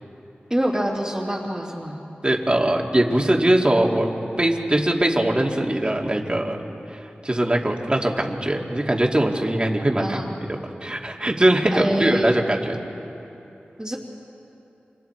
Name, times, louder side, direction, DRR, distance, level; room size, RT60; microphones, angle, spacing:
voice 1, 0.5-2.0 10.0-10.3 11.7-12.3 13.8-14.0, right 1 dB, 10° right, -8 dB, 3.0 m, -25 dB
voice 2, 2.2-4.1 4.4-6.6 6.9-10.2 10.5-12.8, right 1 dB, 25° right, 0 dB, 2.5 m, -21 dB
30.0 x 26.5 x 4.6 m, 2.9 s
wide cardioid pair, 60°, 4 cm